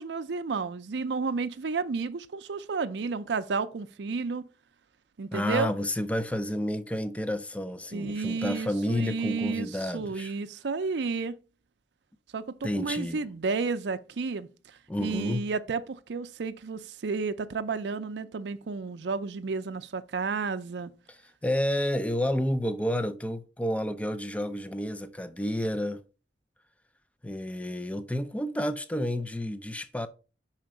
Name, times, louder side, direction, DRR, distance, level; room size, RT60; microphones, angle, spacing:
voice 1, 0.0-4.4 5.2-5.7 7.9-9.7 9.9-11.4 12.3-20.9, right 4 dB, 80° right, 0.5 m, -32 dB
voice 2, 5.3-10.3 12.6-13.2 14.9-15.5 21.1-26.1 27.2-30.1, left 1 dB, 10° left, 0.4 m, -30 dB
5.6 x 4.4 x 5.1 m
head